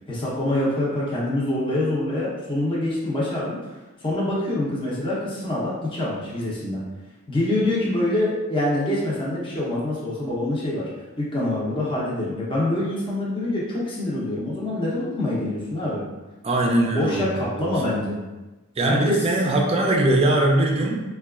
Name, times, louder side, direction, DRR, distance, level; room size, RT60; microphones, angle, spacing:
voice 1, 0.1-3.6 4.0-6.8 7.3-10.9 11.2-16.0 16.6-18.2 18.8-19.2, left 1 dB, 25° left, -7 dB, 0.7 m, -25 dB
voice 2, 16.4-18.0 18.8-21.0, right 2 dB, 25° right, 0 dB, 0.4 m, -22 dB
4.0 x 2.3 x 2.3 m, 1.1 s
head